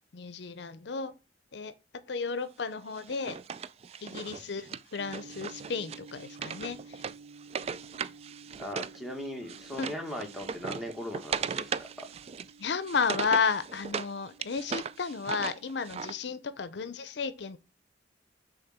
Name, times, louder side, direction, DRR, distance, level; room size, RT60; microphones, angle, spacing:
voice 1, 0.1-1.1 1.5-1.7 2.1-3.4 4.0-7.0 9.8-9.9 12.6-17.6, left 5 dB, 70° left, 0.6 m, -33 dB
Wood, 2.9-9.0 9.2-14.1 14.4-16.1, right 6 dB, 35° right, 0.3 m, -38 dB
sound 1, 5.0-16.3, right 4 dB, 50° right, 2.1 m, -53 dB
voice 2, 8.5-11.9, left 1 dB, ahead, 1.5 m, -39 dB
6.4 x 3.8 x 6.0 m
head